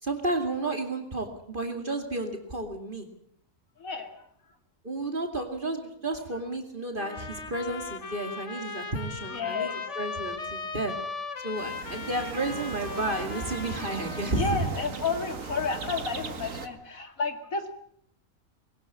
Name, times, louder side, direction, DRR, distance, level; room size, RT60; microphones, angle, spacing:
voice 1, 0.0-3.1 4.8-10.9 11.4-14.7, right 2 dB, 35° right, 5 dB, 2.6 m, -32 dB
voice 2, 3.8-4.5 6.3-6.4 9.3-10.0 14.2-17.8, left 4 dB, 80° left, 7 dB, 2.7 m, -32 dB
sound 1, 7.0-14.8, left 4 dB, 60° left, 1.8 m, -38 dB
sound 2, 11.6-16.7, right 4 dB, 70° right, 2.0 m, -38 dB
21.0 x 18.5 x 8.7 m, 0.66 s
omnidirectional pair, 1.4 m